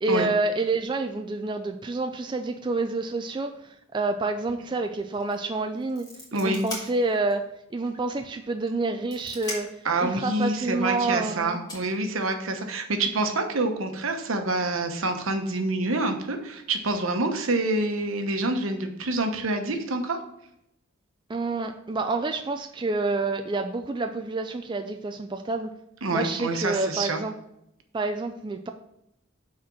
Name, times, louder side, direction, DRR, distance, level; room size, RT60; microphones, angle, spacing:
voice 1, 0.0-6.1 6.3-11.6 21.3-25.7 26.1-27.3 27.9-28.7, right 3 dB, 20° right, 6 dB, 0.3 m, -28 dB
sound 1, 5.1-5.3 5.6-7.4 7.9-8.0 8.7-9.9 11.1-11.2 11.7-12.7, left 1 dB, 20° left, 1.7 m, -39 dB
voice 2, 6.3-6.6 9.8-20.2 26.0-27.2, right 2 dB, 75° right, 5 dB, 1.0 m, -27 dB
6.1 x 4.3 x 5.9 m, 0.79 s
head